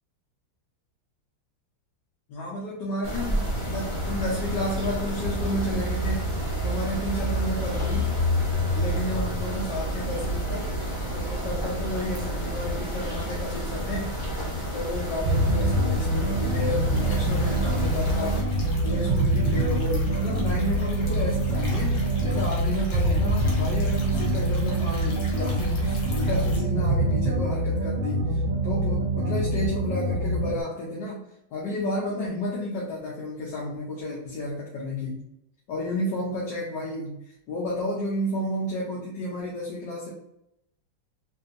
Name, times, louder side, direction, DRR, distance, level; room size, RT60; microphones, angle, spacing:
voice 1, 2.3-3.4 3.6-8.1 8.7-10.7 11.1-14.1 14.7-18.5 18.8-31.2 31.5-35.3 35.7-37.2 37.5-40.1, left 1 dB, 65° left, -5 dB, 1.4 m, -32 dB
sound 1, 3.0-18.4, equal, 20° left, 0.9 m, -29 dB
sound 2, 15.3-30.6, right 1 dB, 80° right, 1.4 m, -25 dB
sound 3, 16.9-26.6, right 5 dB, 85° left, 1.9 m, -32 dB
4.1 x 2.8 x 2.6 m, 0.82 s
omnidirectional pair, 2.2 m